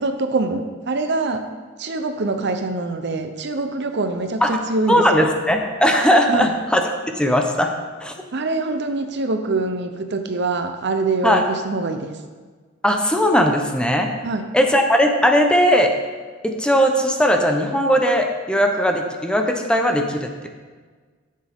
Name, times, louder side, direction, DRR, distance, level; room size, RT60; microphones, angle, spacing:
voice 1, 0.0-1.4 1.8-5.2 6.3-6.5 8.3-12.1 14.2-14.4, right 3 dB, 60° right, 7 dB, 0.8 m, -24 dB
voice 2, 4.9-6.9 7.2-7.7 8.0-8.1 11.2-11.4 12.8-14.1 14.5-16.0 16.4-20.5, equal, 5° left, 3 dB, 0.8 m, -18 dB
12.5 x 7.5 x 3.6 m, 1.5 s
head